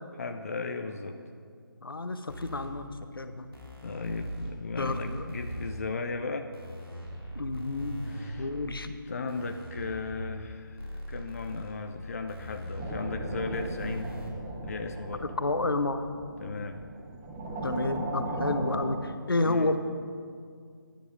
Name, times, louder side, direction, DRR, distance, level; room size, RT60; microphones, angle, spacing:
voice 1, 0.2-1.2 3.8-6.5 8.0-8.5 8.8-14.1 14.6-15.3 16.4-16.8 19.4-19.7, left 4 dB, 40° left, 6 dB, 0.5 m, -36 dB
voice 2, 1.8-2.9 3.1-3.5 4.8-5.3 7.4-8.0 8.4-8.9 15.4-16.1 17.6-19.8, left 2 dB, 75° left, 9 dB, 0.7 m, -30 dB
sound 1, 2.3-2.7 3.5-4.5 4.8-5.7 6.5-8.7 9.3-10.3 10.8-11.7 12.3-14.3, equal, 85° right, 2.9 m, -40 dB
sound 2, 12.8-18.9, right 1 dB, 15° right, 0.7 m, -37 dB
13.5 x 10.0 x 2.5 m, 2.1 s
figure-of-eight pair, 150°, 12 cm